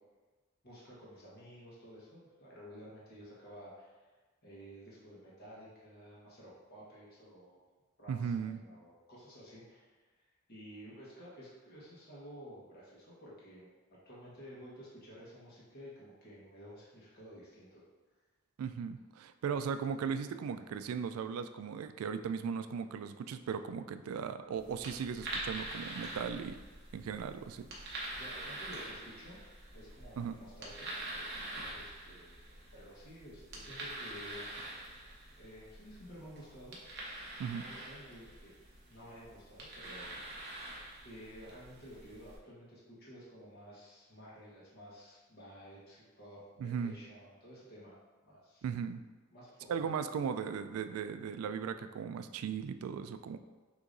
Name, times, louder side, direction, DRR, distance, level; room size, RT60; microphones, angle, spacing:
voice 1, 0.6-4.0 4.4-7.6 8.0-10.0 10.5-13.8 14.0-17.8 28.1-29.4 29.7-32.4 32.7-34.9 35.4-36.8 37.5-38.5 38.8-40.3 41.0-48.0 48.3-48.6 49.3-50.2, equal, 50° left, -7 dB, 1.2 m, -52 dB
voice 2, 8.1-8.6 18.6-26.6 26.9-28.1 30.2-30.4 37.4-37.6 46.6-47.0 48.6-49.0 49.7-53.4, right 6 dB, 85° right, 12 dB, 0.3 m, -37 dB
sound 1, 24.5-42.4, right 1 dB, 50° right, 0.9 m, -45 dB
6.3 x 2.9 x 2.6 m, 1.3 s
head